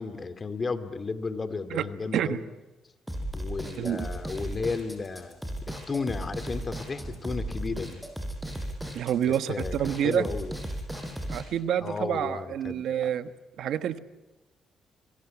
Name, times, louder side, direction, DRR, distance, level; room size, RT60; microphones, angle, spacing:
voice 1, 0.0-2.5 3.3-8.0 9.2-9.8 10.0-10.6 11.8-13.1, left 4 dB, 35° left, 10 dB, 2.5 m, -34 dB
sound 1, 3.1-11.4, right 1 dB, ahead, 6.7 m, -35 dB
voice 2, 3.8-4.1 8.9-10.3 11.3-13.3 13.6-14.0, right 10 dB, 75° right, 11 dB, 1.3 m, -28 dB
26.0 x 22.5 x 9.6 m, 1.1 s
cardioid pair, 90°, 0 cm